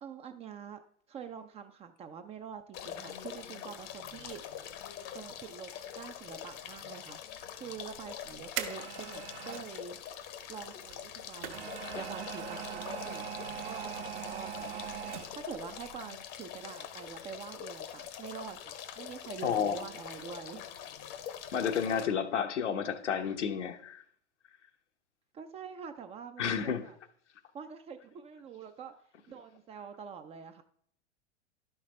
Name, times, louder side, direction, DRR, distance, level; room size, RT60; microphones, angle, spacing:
voice 1, 0.0-0.8 1.1-4.4 5.1-7.2 7.6-10.0 10.5-13.3 13.6-14.9 15.4-20.6 25.3-27.0 27.5-28.9 29.3-30.6, right 7 dB, 20° right, 0.4 m, -45 dB
sound 1, 2.7-22.1, left 9 dB, 35° left, 0.8 m, -44 dB
sound 2, 8.0-9.7 10.9-15.6 15.9-16.0, right 9 dB, 50° right, 1.1 m, -40 dB
voice 2, 19.4-19.8 21.5-24.0 26.4-26.8, left 7 dB, 75° left, 1.0 m, -31 dB
11.5 x 5.8 x 3.2 m
figure-of-eight pair, 100°, 35 cm